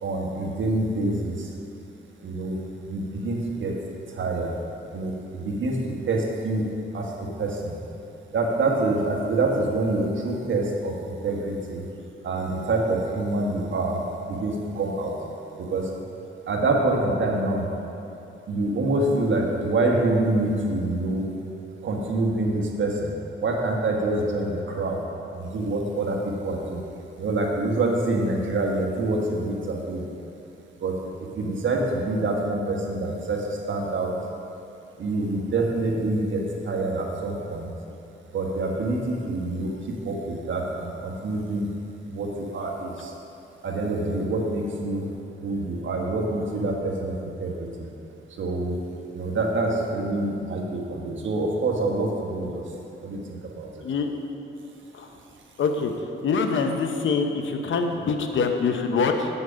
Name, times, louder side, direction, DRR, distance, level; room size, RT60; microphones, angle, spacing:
voice 1, 0.0-1.5 2.2-2.6 2.9-3.7 4.2-4.5 4.9-5.8 6.1-7.7 8.3-11.8 12.2-14.0 14.3-15.1 15.6-15.9 16.5-17.7 18.5-21.3 21.8-23.1 23.4-25.0 25.3-26.8 27.2-30.1 30.8-31.0 31.3-34.1 35.0-37.7 38.3-41.8 42.1-43.1 43.6-45.1 45.4-47.9 48.4-48.8 49.1-52.6 53.0-53.7, right 2 dB, 70° right, -1 dB, 1.4 m, -26 dB
voice 2, 55.6-55.9 56.2-59.3, left 5 dB, 70° left, 5 dB, 0.8 m, -24 dB
8.0 x 7.2 x 5.1 m, 2.8 s
cardioid pair, 80°, 21 cm